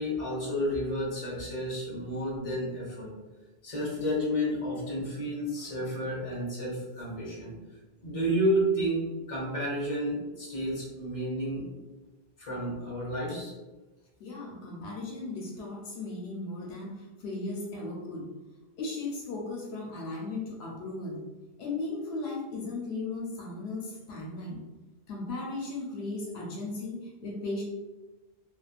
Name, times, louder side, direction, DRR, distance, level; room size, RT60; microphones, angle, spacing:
voice 1, 0.0-3.1 3.6-7.5 8.0-11.7 12.4-13.5, equal, 35° left, -6 dB, 1.2 m, -31 dB
voice 2, 14.2-18.3 18.8-21.2 21.6-24.6 25.1-27.6, left 2 dB, 85° left, -2 dB, 0.9 m, -36 dB
3.4 x 2.2 x 2.3 m, 1.2 s
omnidirectional pair, 1.0 m